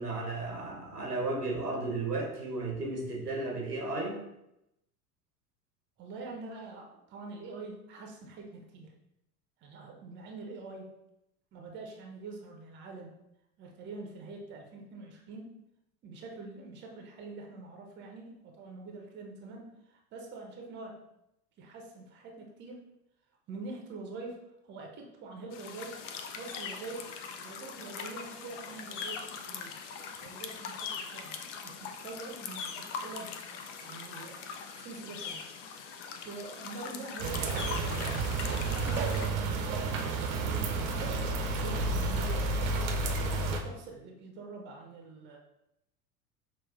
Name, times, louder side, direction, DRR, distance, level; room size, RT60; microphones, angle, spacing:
voice 1, 0.0-4.2, right 2 dB, 90° right, -1 dB, 0.9 m, -34 dB
voice 2, 6.0-8.9 9.6-10.9 11.5-13.2 13.6-15.6 16.0-21.0 21.6-22.9 23.5-26.0 26.3-27.1 27.4-29.7 30.2-33.4 33.8-34.5 34.8-35.4 36.2-40.0 40.4-43.1 43.5-45.4, right 3 dB, 25° right, 1 dB, 0.6 m, -45 dB
sound 1, 25.5-39.3, left 6 dB, 55° left, 0.5 m, -41 dB
sound 2, 37.2-43.6, right 3 dB, 60° right, 0.7 m, -31 dB
5.7 x 2.4 x 2.4 m, 0.85 s
figure-of-eight pair, 75°, 46 cm